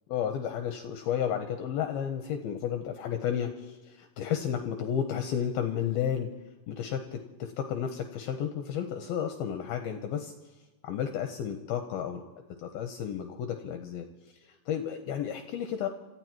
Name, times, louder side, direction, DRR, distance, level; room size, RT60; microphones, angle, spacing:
voice 1, 0.1-6.3 6.7-10.3 10.8-14.1 14.4-15.9, left 9 dB, 75° left, 5 dB, 2.5 m, -32 dB
27.0 x 14.5 x 3.0 m, 1.1 s
omnidirectional pair, 4.9 m